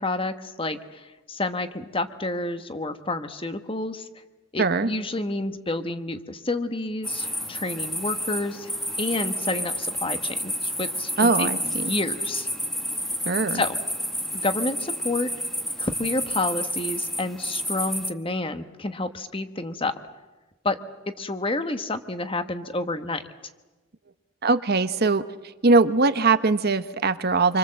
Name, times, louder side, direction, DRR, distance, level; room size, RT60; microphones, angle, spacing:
voice 1, 0.0-4.1 4.5-8.7 9.0-12.5 13.5-13.8 14.3-15.4 15.8-19.9 20.6-20.8 21.2-23.2, left 2 dB, 25° left, 9 dB, 1.2 m, -29 dB
voice 2, 4.6-4.9 11.2-11.9 13.3-13.6 24.4-25.2 25.6-27.6, right 3 dB, 50° right, 11 dB, 0.9 m, -21 dB
sound 1, 7.0-18.1, equal, ahead, 1.1 m, -30 dB
27.0 x 24.5 x 7.7 m, 1.2 s
head